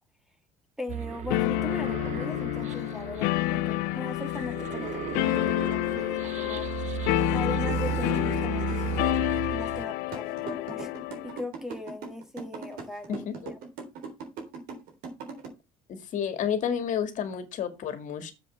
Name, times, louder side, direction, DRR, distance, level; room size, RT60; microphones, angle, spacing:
voice 1, 0.8-6.7 7.3-9.2 9.5-10.9 11.2-13.2, left 1 dB, 5° right, 7 dB, 1.7 m, -39 dB
sound 1, 0.9-9.9, right 11 dB, 50° right, 0.5 m, -35 dB
sound 2, 1.3-11.4, left 19 dB, 85° left, 0.4 m, -29 dB
sound 3, 10.1-15.5, right 5 dB, 70° right, 3.6 m, -39 dB
voice 2, 13.1-13.5 15.9-18.3, left 8 dB, 55° left, 9 dB, 2.0 m, -31 dB
7.6 x 5.2 x 6.4 m, 0.26 s
cardioid pair, 110°, 15 cm